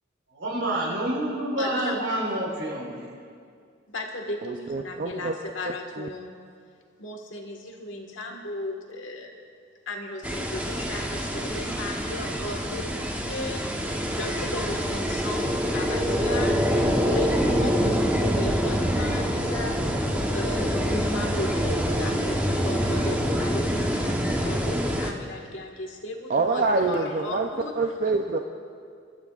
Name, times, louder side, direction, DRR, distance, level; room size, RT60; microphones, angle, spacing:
voice 1, 0.3-3.1, right 1 dB, 85° right, -2 dB, 4.1 m, -28 dB
voice 2, 1.6-2.0 3.9-6.3 7.0-9.3 9.9-19.8 20.3-27.7 28.3-28.4, left 1 dB, 70° left, 2 dB, 1.7 m, -36 dB
voice 3, 4.4-5.4 5.6-6.1 26.3-27.5 27.8-28.4, right 3 dB, 45° right, 3 dB, 0.5 m, -26 dB
sound 1, 10.2-25.1, equal, 10° right, 1.0 m, -26 dB
24.0 x 13.0 x 2.5 m, 2.2 s
head